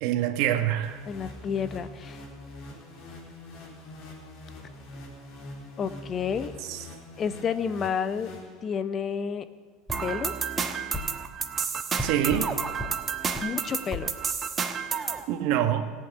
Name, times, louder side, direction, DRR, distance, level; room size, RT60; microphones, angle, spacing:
voice 1, 0.0-1.0 6.7-6.8 12.0-12.5 15.3-15.9, right 11 dB, 65° right, 9 dB, 1.2 m, -25 dB
sound 1, 0.8-9.0, left 2 dB, 55° left, 4.0 m, -44 dB
voice 2, 1.1-2.2 5.8-6.5 7.2-8.3 8.6-9.5 10.0-10.3 13.4-14.1, left 7 dB, 35° left, 12 dB, 0.9 m, -30 dB
sound 2, 9.9-10.0 10.9-11.1 12.0-12.5 12.8-12.9 13.3-13.5 13.9-14.1, left 1 dB, 5° right, 2.6 m, -34 dB
sound 3, 9.9-15.2, right 6 dB, 30° right, 1.2 m, -30 dB
15.5 x 8.5 x 9.4 m, 1.5 s
hypercardioid pair, 95°, 0 cm